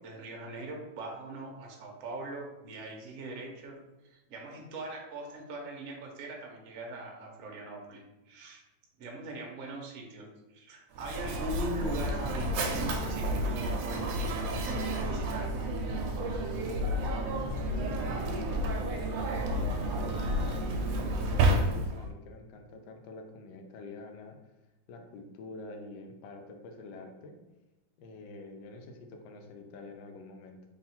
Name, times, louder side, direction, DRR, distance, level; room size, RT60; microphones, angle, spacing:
voice 1, 0.0-3.8 4.0-8.6 9.0-15.6, right 2 dB, 60° right, 0 dB, 0.9 m, -41 dB
Mechanisms, 10.9-22.1, right 1 dB, 75° right, 1.2 m, -31 dB
voice 2, 17.2-24.4 24.9-27.3 28.0-30.6, left 2 dB, 75° left, 3 dB, 1.3 m, -47 dB
3.5 x 2.4 x 4.1 m, 1.0 s
omnidirectional pair, 2.1 m